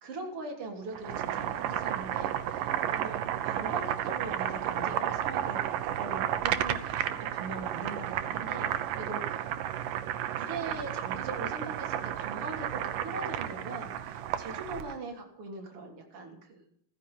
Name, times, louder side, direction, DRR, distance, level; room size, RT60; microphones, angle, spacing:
voice 1, 0.0-9.5 10.4-16.6, right 3 dB, 45° right, 1 dB, 4.0 m, -41 dB
Boiling, 0.9-15.0, right 11 dB, 85° right, 2.6 m, -32 dB
15.0 x 15.0 x 5.6 m, 0.66 s
omnidirectional pair, 3.7 m